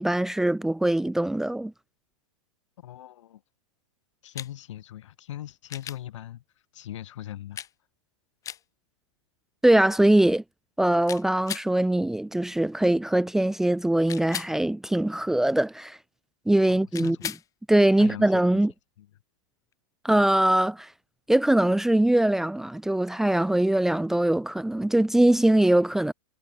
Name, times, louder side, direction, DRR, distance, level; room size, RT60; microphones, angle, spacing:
voice 1, 0.0-1.7 9.6-10.4 10.8-16.0 16.5-17.3 17.7-18.7 20.0-20.9 21.3-26.1, right 1 dB, ahead, 1.0 m, -22 dB
voice 2, 2.8-3.4 4.2-6.4 6.7-7.6 16.7-17.2 18.0-18.3 19.0-19.1, left 12 dB, 65° left, 5.0 m, -40 dB
sound 1, 4.3-4.5 5.7-6.0 7.6-7.7 8.4-8.6 11.1-11.7 14.1-14.5 16.9-17.5 19.7-19.8, left 10 dB, 20° left, 6.7 m, -36 dB
hypercardioid pair, 155°, 17 cm